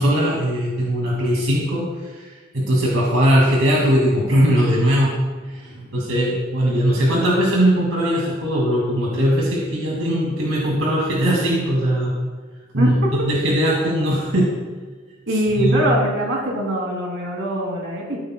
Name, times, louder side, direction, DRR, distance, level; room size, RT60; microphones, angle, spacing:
voice 1, 0.0-1.9 2.1-2.2 2.5-5.2 5.5-12.1 12.7-14.5 15.6-15.9, equal, 80° right, -3 dB, 2.3 m, -19 dB
voice 2, 12.8-13.3 15.3-18.2, equal, 65° right, -1 dB, 2.8 m, -22 dB
14.0 x 12.0 x 2.3 m, 1.4 s
head